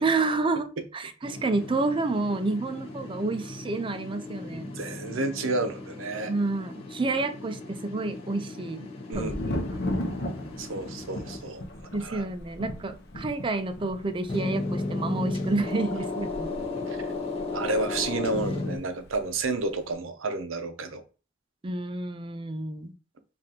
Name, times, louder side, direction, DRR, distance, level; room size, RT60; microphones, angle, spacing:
voice 1, 0.0-4.7 6.3-8.9 9.1-9.4 11.9-16.5 21.6-22.9, right 3 dB, 25° right, 0.4 m, -29 dB
sound 1, 1.2-11.7 14.3-18.8, left 2 dB, 30° left, 0.9 m, -35 dB
voice 2, 4.5-6.3 9.1-9.6 10.6-11.6 12.0-12.3 16.9-17.0 17.5-21.0, right 3 dB, 85° right, 0.6 m, -31 dB
Thunder, 9.1-18.8 19.0-19.8, left 1 dB, 55° left, 0.8 m, -37 dB
5.1 x 2.5 x 2.8 m
head